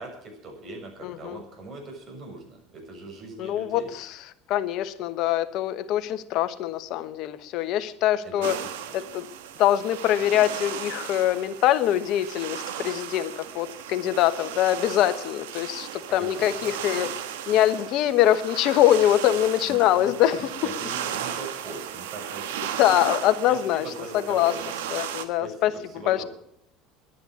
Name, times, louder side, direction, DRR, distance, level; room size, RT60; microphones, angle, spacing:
voice 1, 0.0-3.9 8.2-8.9 16.1-16.7 19.7-22.7 23.5-24.6 25.4-26.3, right 2 dB, 45° right, 2 dB, 6.8 m, -41 dB
voice 2, 1.0-1.4 3.4-4.2 4.5-8.6 8.9-9.3 9.6-17.1 17.5-20.4 22.8-23.8 24.1-24.5 24.9-25.7 26.1-26.2, left 12 dB, 60° left, 11 dB, 1.1 m, -23 dB
sound 1, 8.4-25.3, right 9 dB, 85° right, 1.4 m, -35 dB
11.0 x 10.0 x 9.3 m, 0.77 s
supercardioid pair, 100°, 0 cm